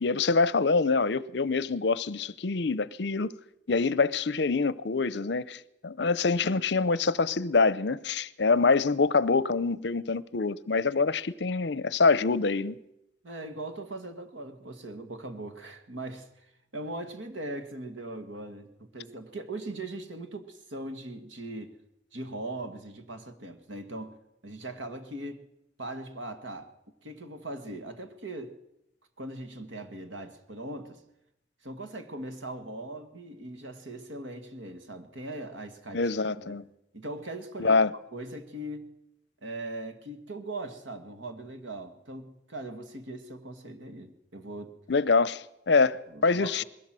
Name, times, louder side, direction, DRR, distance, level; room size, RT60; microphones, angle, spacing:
voice 1, 0.0-3.3 3.7-12.8 35.9-36.6 37.6-37.9 44.9-46.6, left 4 dB, 60° left, 0.6 m, -25 dB
voice 2, 13.2-21.8 22.1-24.2 24.4-25.5 25.8-26.7 27.0-28.6 29.2-31.0 31.6-36.1 36.4-36.6 36.9-37.8 38.1-38.9 39.4-44.8 46.1-46.6, right 2 dB, 75° right, 1.9 m, -40 dB
21.0 x 16.5 x 7.6 m
head